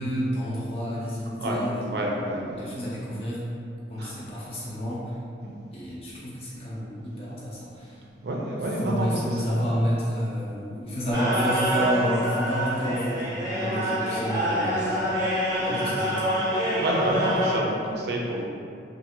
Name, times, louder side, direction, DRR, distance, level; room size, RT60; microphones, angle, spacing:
voice 1, 0.0-3.5 3.9-5.2 5.7-8.0 8.8-15.2 15.6-16.4, equal, 35° left, -7 dB, 0.5 m, -30 dB
voice 2, 1.4-2.8 4.0-4.1 5.4-5.5 8.2-9.7 15.7-16.0 16.8-18.4, right 1 dB, 65° right, -1 dB, 0.4 m, -29 dB
sound 1, 11.1-17.6, equal, 20° right, 0.7 m, -26 dB
2.6 x 2.4 x 2.8 m, 2.4 s
head